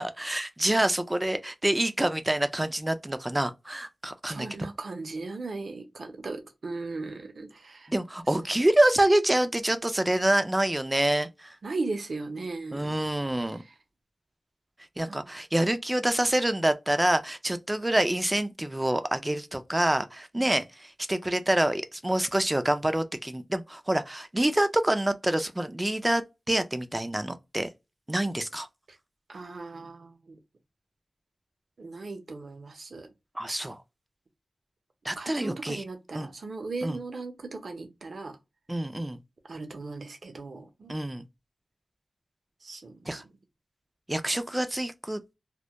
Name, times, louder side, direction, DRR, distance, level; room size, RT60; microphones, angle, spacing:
voice 1, 0.0-4.5 7.9-11.6 12.7-13.6 15.0-27.7 28.1-28.7 33.4-33.8 35.0-35.8 36.1-36.3 36.8-37.0 38.7-39.2 40.9-41.3 43.1-43.2 44.1-45.3, right 1 dB, 15° right, 0.3 m, -26 dB
voice 2, 4.3-7.9 8.3-8.4 11.6-13.0 13.5-13.7 15.1-15.4 20.3-20.6 28.9-29.0 29.3-30.4 31.8-33.1 35.2-38.4 39.5-41.0 42.6-43.2, right 3 dB, 70° right, 0.6 m, -38 dB
2.1 x 2.1 x 2.6 m
wide cardioid pair, 80°, 0 cm